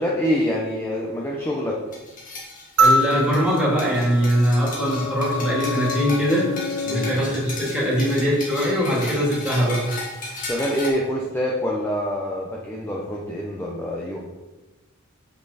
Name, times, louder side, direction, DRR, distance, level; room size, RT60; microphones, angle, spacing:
voice 1, 0.0-1.8 6.8-7.2 10.4-14.2, equal, 10° left, -3 dB, 0.9 m, -26 dB
sound 1, 1.9-10.9, left 2 dB, 40° left, 1.9 m, -36 dB
voice 2, 2.8-6.5 6.9-9.9, equal, 5° right, -6 dB, 2.8 m, -21 dB
sound 2, 2.8-5.3 7.0-7.1, right 1 dB, 75° right, 0.7 m, -23 dB
sound 3, 4.1-9.5 9.7-9.8, left 5 dB, 75° left, 0.6 m, -32 dB
8.6 x 5.8 x 4.2 m, 1.1 s
head